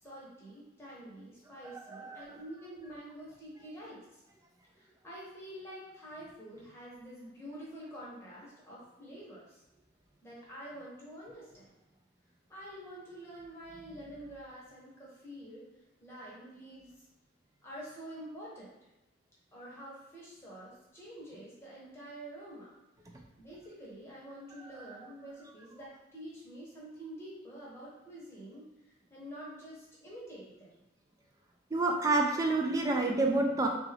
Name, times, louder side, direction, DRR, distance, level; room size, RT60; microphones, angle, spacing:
voice 1, 0.0-4.0 4.8-9.4 10.2-11.7 12.5-15.6 16.0-16.9 17.6-18.7 19.5-22.7 23.4-28.6 29.1-30.7, right 1 dB, 15° left, -7 dB, 0.8 m, -47 dB
voice 2, 1.6-2.3 31.7-33.7, right 2 dB, 15° right, 2 dB, 0.3 m, -28 dB
3.7 x 2.4 x 3.2 m, 0.94 s
head